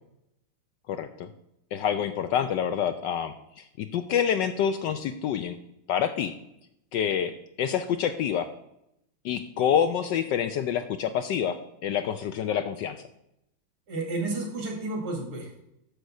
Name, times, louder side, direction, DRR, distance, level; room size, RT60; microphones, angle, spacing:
voice 1, 0.9-1.3 1.7-5.6 5.9-6.3 6.9-7.3 7.6-8.5 9.2-11.6 11.8-13.0, left 8 dB, 75° left, 9 dB, 1.0 m, -27 dB
voice 2, 13.9-15.6, right 2 dB, 75° right, 1 dB, 3.0 m, -32 dB
7.0 x 6.6 x 6.3 m, 0.81 s
omnidirectional pair, 2.4 m